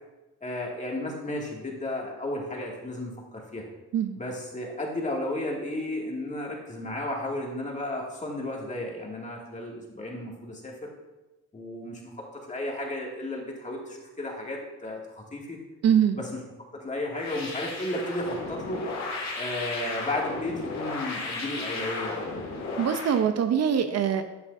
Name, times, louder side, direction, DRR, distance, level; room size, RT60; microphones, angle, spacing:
voice 1, 0.4-3.6 4.2-10.9 11.5-12.1 12.4-15.6 16.1-16.3 16.7-18.8 19.3-22.4, left 1 dB, 25° left, -2 dB, 2.2 m, -33 dB
voice 2, 15.8-16.2 22.8-24.2, right 8 dB, 60° right, 8 dB, 0.7 m, -23 dB
sound 1, 17.1-23.2, left 3 dB, 60° left, 2.2 m, -34 dB
10.5 x 7.3 x 2.6 m, 1.0 s
cardioid pair, 90°, 30 cm